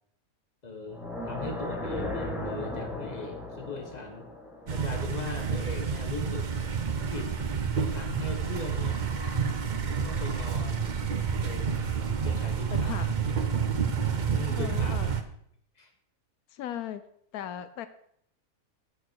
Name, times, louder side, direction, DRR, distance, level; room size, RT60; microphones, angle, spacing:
voice 1, 0.6-4.3 4.7-6.5 7.1-7.3 7.8-9.1 10.0-11.0 11.4-13.1 14.3-15.2 15.8-15.9, left 3 dB, 30° left, 4 dB, 1.6 m, -39 dB
sound 1, 0.8-5.9, left 1 dB, ahead, 1.8 m, -37 dB
sound 2, 4.7-15.2, right 6 dB, 40° right, 0.7 m, -29 dB
voice 2, 12.7-13.1 14.5-15.1 16.5-17.0 17.3-17.9, left 10 dB, 85° left, 12 dB, 1.1 m, -37 dB
11.5 x 6.5 x 4.7 m, 0.69 s
omnidirectional pair, 1.5 m